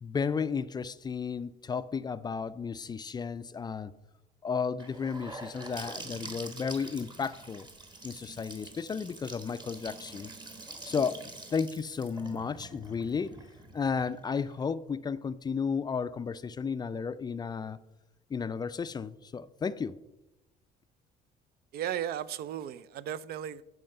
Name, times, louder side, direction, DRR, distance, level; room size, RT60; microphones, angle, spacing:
voice 1, 0.0-3.9 4.4-7.7 8.0-10.3 10.8-13.4 13.7-17.8 18.3-20.0, left 5 dB, 25° left, 0.3 m, -33 dB
Gurgling / Sink (filling or washing) / Bathtub (filling or washing), 4.8-14.6, right 2 dB, 25° right, 1.3 m, -46 dB
voice 2, 21.7-23.6, right 10 dB, 65° right, 0.5 m, -35 dB
11.0 x 4.8 x 5.4 m
cardioid pair, 110°, 17 cm